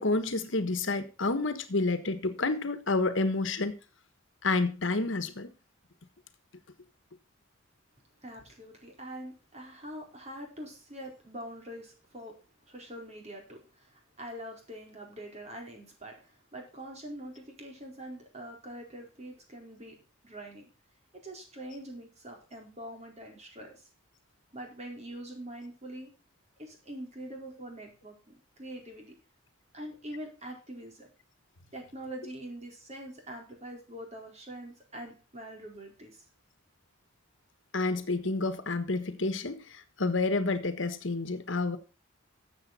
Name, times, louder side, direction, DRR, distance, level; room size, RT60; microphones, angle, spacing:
voice 1, 0.0-3.7 4.4-5.5 37.7-41.8, left 3 dB, 65° left, 1.3 m, -29 dB
voice 2, 8.2-12.3 12.7-20.0 20.2-20.7 21.2-23.7 24.5-26.1 26.6-29.1 29.7-31.1 31.7-36.3, right 1 dB, 35° right, 4.4 m, -44 dB
13.5 x 7.9 x 4.3 m
head